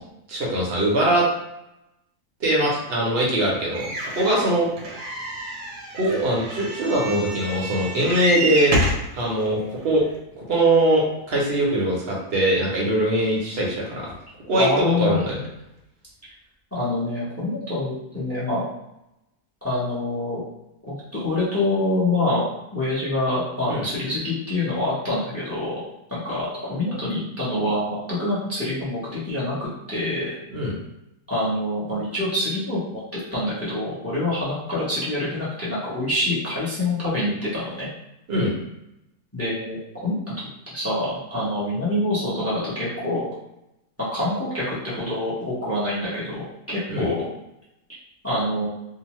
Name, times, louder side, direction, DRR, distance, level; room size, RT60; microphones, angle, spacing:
voice 1, 0.3-1.3 2.4-4.7 5.9-10.0 10.4-14.1 14.5-15.3 23.7-23.8 30.5-30.7 38.3-38.5 46.9-47.1, right 1 dB, 50° right, -4 dB, 0.8 m, -22 dB
sound 1, 3.7-9.1 9.8-9.9 10.1-10.2, right 1 dB, 85° right, 1.2 m, -28 dB
voice 2, 14.5-15.4 16.7-18.6 19.6-20.4 20.9-22.4 22.7-25.8 26.1-30.3 31.3-37.9 39.3-39.8 40.0-40.3 40.7-43.3 44.1-46.4 46.7-47.2 48.2-48.7, left 1 dB, 15° left, -9 dB, 0.6 m, -26 dB
2.9 x 2.1 x 3.0 m, 0.87 s
omnidirectional pair, 1.8 m